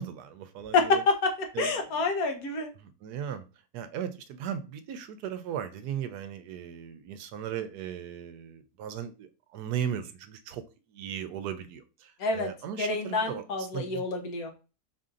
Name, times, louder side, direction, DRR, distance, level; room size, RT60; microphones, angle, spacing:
voice 1, 0.0-1.0 1.5-1.7 2.8-3.4 3.7-10.6 10.9-13.4 13.7-14.0, right 9 dB, 80° right, 11 dB, 1.1 m, -37 dB
voice 2, 0.7-2.7 12.2-12.5 12.8-14.5, left 3 dB, 65° left, 4 dB, 1.3 m, -27 dB
4.3 x 2.6 x 3.7 m, 0.32 s
omnidirectional pair, 1.7 m